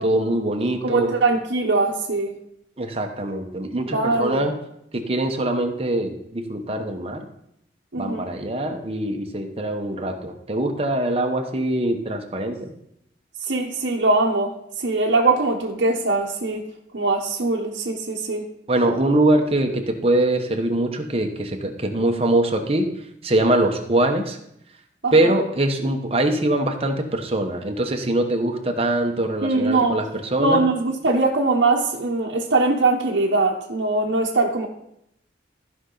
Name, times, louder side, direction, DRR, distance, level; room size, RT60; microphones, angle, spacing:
voice 1, 0.0-1.1 2.8-4.5 4.9-7.2 8.0-12.7 18.7-22.8 23.2-24.4 25.1-30.6, right 1 dB, 30° right, 4 dB, 1.1 m, -23 dB
voice 2, 0.8-2.3 3.9-4.5 7.9-8.3 13.4-16.6 16.9-18.4 25.0-25.4 29.4-30.0 30.4-34.7, right 3 dB, 70° right, -2 dB, 1.0 m, -22 dB
14.5 x 5.6 x 4.0 m, 0.77 s
head